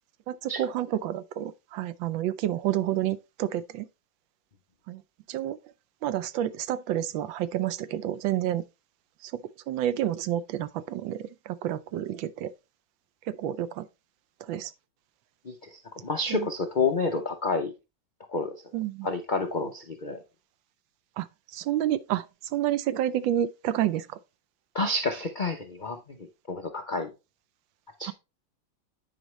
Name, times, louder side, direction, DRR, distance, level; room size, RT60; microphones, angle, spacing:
voice 1, 0.3-3.9 4.9-5.0 5.3-5.6 6.0-8.6 9.2-12.5 13.3-13.9 14.4-14.7 16.3-16.5 18.7-19.1 21.2-21.3 21.5-22.3 22.5-24.1 28.1-28.2, right 12 dB, 80° right, 1.3 m, -29 dB
voice 2, 15.4-17.7 18.3-18.6 19.0-20.2 24.7-26.2 26.5-27.1 28.0-28.1, left 3 dB, 75° left, 0.4 m, -29 dB
10.0 x 5.1 x 3.1 m
omnidirectional pair, 2.1 m